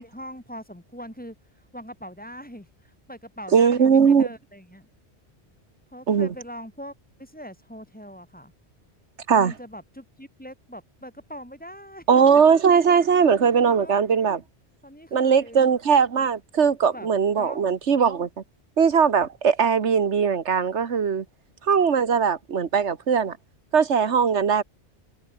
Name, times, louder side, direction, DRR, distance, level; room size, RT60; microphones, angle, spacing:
voice 1, 0.0-1.4 1.7-4.9 5.9-6.9 7.2-8.5 9.3-12.5 13.6-14.0 14.8-15.7 16.9-17.1 17.4-17.7 24.0-24.1, equal, 5° left, 7.2 m, -41 dB
voice 2, 3.5-4.3 6.1-6.3 9.3-9.5 12.1-14.4 15.1-18.3 18.8-21.2 21.7-23.4 23.7-24.6, right 6 dB, 90° right, 1.7 m, -20 dB
omnidirectional pair, 1.1 m